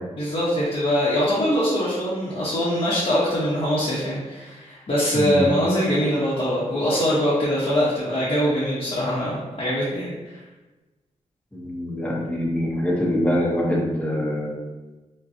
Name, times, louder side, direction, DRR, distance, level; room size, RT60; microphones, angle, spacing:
voice 1, 0.2-10.4, equal, 55° left, -9 dB, 1.0 m, -23 dB
voice 2, 5.1-5.5 11.5-14.7, left 1 dB, 10° left, -3 dB, 0.9 m, -24 dB
5.2 x 2.3 x 2.7 m, 1.1 s
wide cardioid pair, 120°, 13 cm